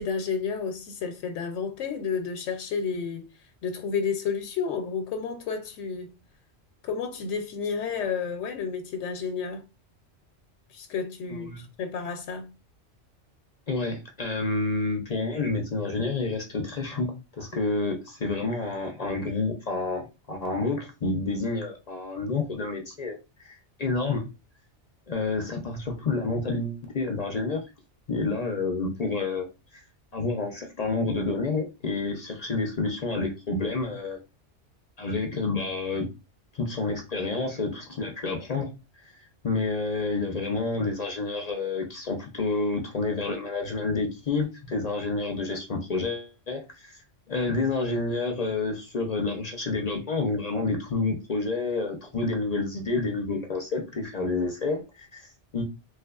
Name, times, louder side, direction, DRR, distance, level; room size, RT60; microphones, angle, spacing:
voice 1, 0.0-3.3 3.6-6.1 6.8-9.6 10.7-12.5, left 6 dB, 85° left, 0.9 m, -31 dB
voice 2, 13.7-17.1 17.4-24.2 25.1-27.6 28.1-29.5 29.7-29.8 30.1-34.2 35.0-36.1 36.5-38.7 39.0-47.0 47.3-55.6, left 3 dB, 50° left, 0.5 m, -29 dB
3.3 x 3.1 x 2.3 m
omnidirectional pair, 1.2 m